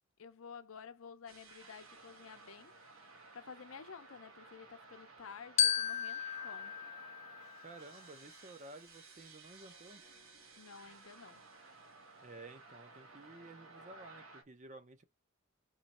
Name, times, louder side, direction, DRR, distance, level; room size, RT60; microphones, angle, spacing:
voice 1, 0.2-2.7 3.3-6.7 10.6-11.4, left 6 dB, 80° left, 0.6 m, -52 dB
sound 1, 1.3-14.4, right 3 dB, 75° right, 1.3 m, -56 dB
Glockenspiel, 5.6-8.1, left 9 dB, 30° left, 0.4 m, -35 dB
voice 2, 7.6-10.0 12.2-15.0, right 2 dB, 35° right, 0.6 m, -53 dB
4.0 x 3.1 x 4.2 m
head